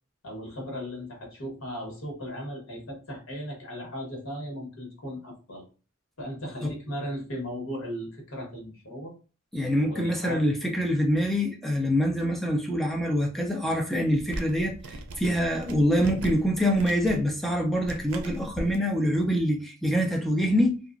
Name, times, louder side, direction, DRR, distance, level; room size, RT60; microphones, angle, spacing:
voice 1, 0.2-5.6 6.2-9.1 9.8-10.4, equal, 65° left, 1.1 m, -37 dB
voice 2, 9.5-20.8, equal, ahead, 0.4 m, -25 dB
sound 1, 14.1-18.8, right 1 dB, 90° right, 0.5 m, -39 dB
2.8 x 2.4 x 2.4 m
head